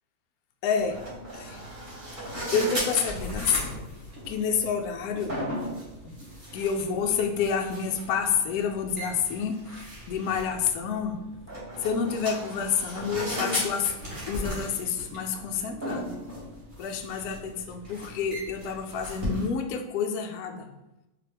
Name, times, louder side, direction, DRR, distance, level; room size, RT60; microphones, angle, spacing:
voice 1, 0.6-1.0 1.3-1.6 2.5-3.8 4.3-5.4 6.0-6.2 6.5-9.6 10.1-11.2 11.8-14.0 14.3-16.1 16.8-20.7, left 6 dB, 80° left, 3 dB, 0.8 m, -28 dB
sound 1, 0.8-19.5, equal, 30° right, 1.5 m, -37 dB
4.7 x 2.9 x 3.4 m, 0.94 s
omnidirectional pair, 2.2 m